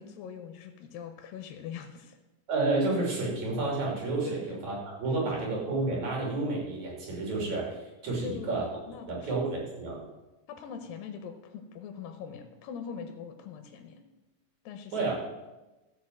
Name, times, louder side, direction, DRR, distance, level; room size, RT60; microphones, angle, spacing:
voice 1, 0.0-2.2 4.2-4.5 5.2-5.5 8.2-9.3 10.5-14.0 14.7-15.1, left 7 dB, 85° left, 6 dB, 2.6 m, -42 dB
voice 2, 2.5-8.7 9.1-10.0 14.9-15.1, right 3 dB, 55° right, -2 dB, 4.1 m, -30 dB
14.0 x 5.5 x 7.7 m, 1.1 s
omnidirectional pair, 4.0 m